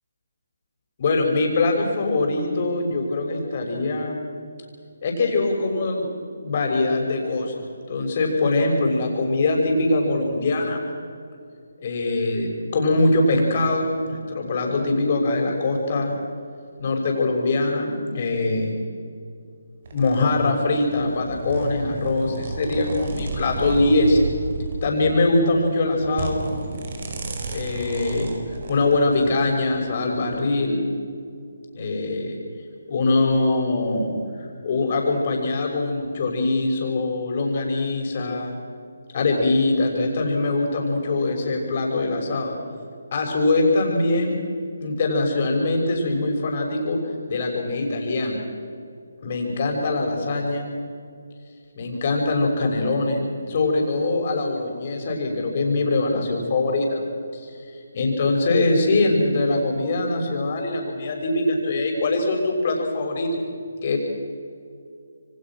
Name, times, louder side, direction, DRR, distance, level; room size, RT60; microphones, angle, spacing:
voice 1, 1.0-4.2 5.0-6.1 6.4-7.5 7.9-10.9 11.8-16.1 16.8-18.8 19.9-24.2 24.8-26.5 27.5-28.3 28.7-30.8 31.7-32.4 32.9-34.1 34.6-38.6 39.1-42.5 43.1-44.4 44.8-47.0 47.3-48.4 49.2-50.7 51.7-57.0 57.4-57.5 57.9-63.4 63.8-64.0, left 2 dB, 40° left, 1 dB, 6.4 m, -22 dB
sound 1, 19.8-29.5 30.1-30.4, right 3 dB, 50° right, 4.9 m, -32 dB
27.5 x 25.0 x 6.3 m, 2.3 s
figure-of-eight pair, 155°, 0 cm